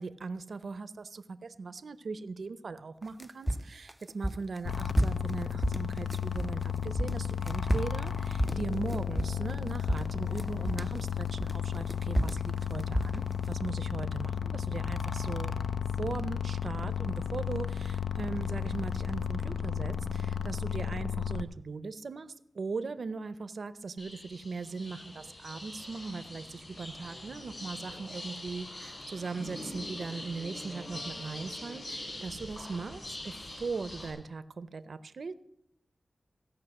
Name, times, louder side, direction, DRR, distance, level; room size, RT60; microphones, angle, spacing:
voice 1, 0.0-15.6 16.0-22.3 22.5-35.3, right 4 dB, 75° right, 14 dB, 0.6 m, -39 dB
sound 1, 3.0-6.6 6.9-9.6 9.9-11.0 11.4-13.5, equal, 5° right, 0.3 m, -31 dB
sound 2, 4.7-21.4, left 7 dB, 80° left, 0.5 m, -33 dB
sound 3, 24.0-34.1, left 1 dB, 45° left, 5.9 m, -43 dB
15.5 x 5.6 x 7.8 m, 0.78 s
wide cardioid pair, 70°, 0 cm